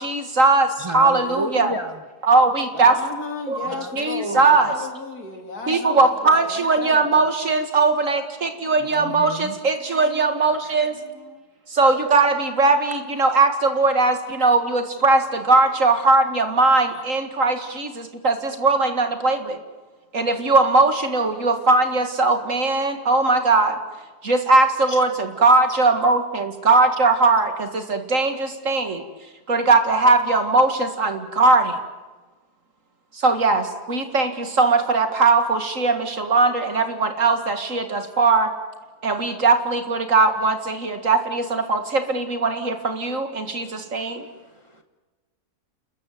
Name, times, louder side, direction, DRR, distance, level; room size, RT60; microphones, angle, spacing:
voice 1, 0.0-1.7 2.3-2.9 3.5-4.7 5.7-10.9 11.7-19.6 20.1-23.8 24.2-29.0 29.5-31.8 33.1-38.5 39.0-44.3, right 3 dB, 55° right, 7 dB, 2.3 m, -19 dB
voice 2, 0.8-1.9 3.7-4.5 8.8-9.6 24.9-25.0 43.6-44.8, right 1 dB, 20° right, 5 dB, 1.3 m, -33 dB
voice 3, 2.7-7.3 8.5-9.1 9.7-10.2 10.8-11.5, left 3 dB, 70° left, 3 dB, 3.6 m, -35 dB
29.0 x 14.0 x 9.4 m, 1.2 s
omnidirectional pair, 1.7 m